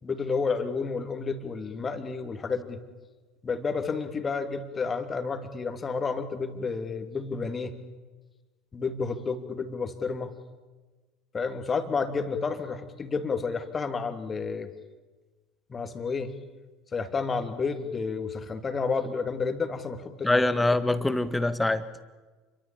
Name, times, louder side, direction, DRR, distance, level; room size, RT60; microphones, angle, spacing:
voice 1, 0.0-2.8 3.4-7.8 8.7-10.3 11.3-14.7 15.7-16.3 16.9-20.4, left 4 dB, 25° left, 8 dB, 2.9 m, -30 dB
voice 2, 20.2-22.0, left 2 dB, 10° left, 12 dB, 1.9 m, -24 dB
29.5 x 23.5 x 7.3 m, 1.3 s
figure-of-eight pair, 70°, 0 cm